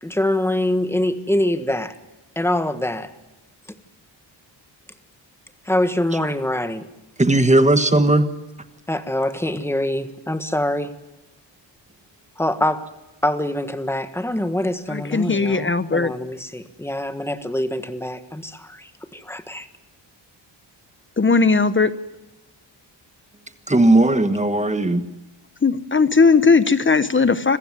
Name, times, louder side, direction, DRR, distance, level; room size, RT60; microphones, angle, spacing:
voice 1, 0.0-1.9 2.3-3.1 5.6-6.9 8.9-10.9 12.4-12.9 13.2-19.7, left 1 dB, 5° left, 10 dB, 1.5 m, -24 dB
voice 2, 7.2-8.3 23.7-25.1, right 2 dB, 15° right, 9 dB, 1.3 m, -16 dB
voice 3, 14.9-16.1 21.2-21.9 25.6-27.6, left 4 dB, 25° left, 13 dB, 0.9 m, -17 dB
26.5 x 15.0 x 9.7 m, 1.0 s
wide cardioid pair, 130°, 45 cm